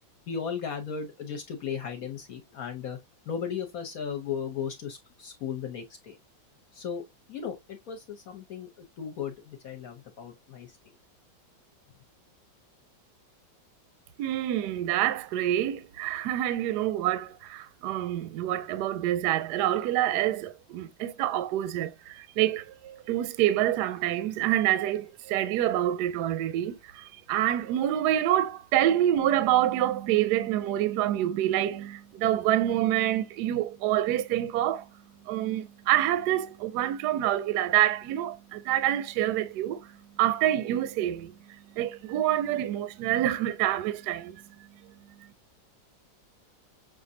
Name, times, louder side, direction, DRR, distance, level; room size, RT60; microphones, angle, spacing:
voice 1, 0.3-3.0 3.3-6.2 6.7-10.7, left 7 dB, 60° left, 1.0 m, -36 dB
voice 2, 14.2-34.9 35.2-44.4 44.8-44.9, right 12 dB, 75° right, 1.0 m, -27 dB
6.3 x 2.5 x 2.6 m
omnidirectional pair, 2.1 m